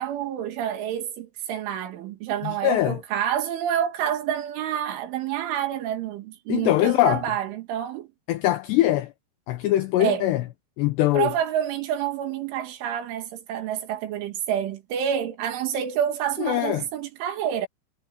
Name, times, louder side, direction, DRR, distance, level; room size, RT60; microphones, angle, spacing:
voice 1, 0.0-8.1 10.0-10.3 11.1-17.7, right 10 dB, 80° right, 4.6 m, -28 dB
voice 2, 2.4-3.0 6.5-7.2 8.3-9.1 9.5-10.4 10.8-11.3 16.4-16.8, left 14 dB, 75° left, 2.8 m, -22 dB
omnidirectional pair, 5.5 m